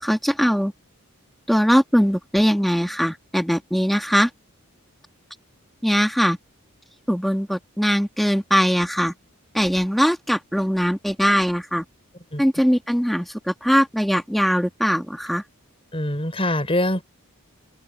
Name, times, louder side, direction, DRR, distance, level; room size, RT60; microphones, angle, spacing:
voice 1, 0.0-0.7 1.5-4.3 5.8-6.4 7.1-9.1 9.5-11.8 12.4-15.4, equal, ahead, 1.4 m, -21 dB
voice 2, 15.9-17.0, left 1 dB, 25° left, 5.4 m, -23 dB
open air
head